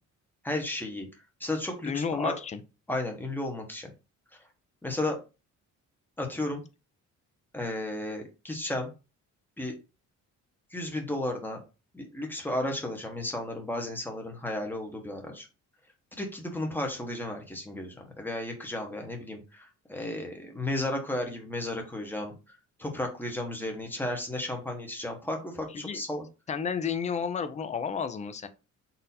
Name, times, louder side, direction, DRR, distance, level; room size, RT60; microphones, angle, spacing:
voice 1, 0.4-1.1 1.4-2.4 2.9-3.9 4.8-5.2 6.2-6.6 7.5-8.9 9.6-9.7 10.7-11.6 11.9-15.5 16.2-22.3 22.8-26.2, left 1 dB, 5° left, 2 dB, 0.8 m, -33 dB
voice 2, 1.8-2.6 25.7-26.0 26.5-28.5, left 6 dB, 25° left, 9 dB, 0.4 m, -31 dB
4.1 x 2.6 x 4.0 m, 0.30 s
cardioid pair, 155°, 31 cm